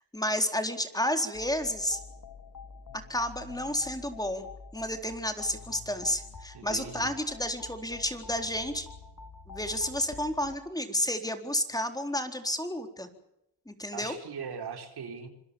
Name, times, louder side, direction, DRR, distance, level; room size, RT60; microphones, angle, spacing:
voice 1, 0.1-2.0 3.1-4.5 4.7-8.9 9.5-13.1 13.7-14.1, left 1 dB, 10° left, 6 dB, 4.1 m, -31 dB
sound 1, 1.3-10.6, left 4 dB, 50° left, 3.6 m, -47 dB
voice 2, 6.5-7.1 13.9-15.3, right 6 dB, 70° right, 5 dB, 4.8 m, -40 dB
27.0 x 21.5 x 7.2 m, 0.84 s
cardioid pair, 80°, 40 cm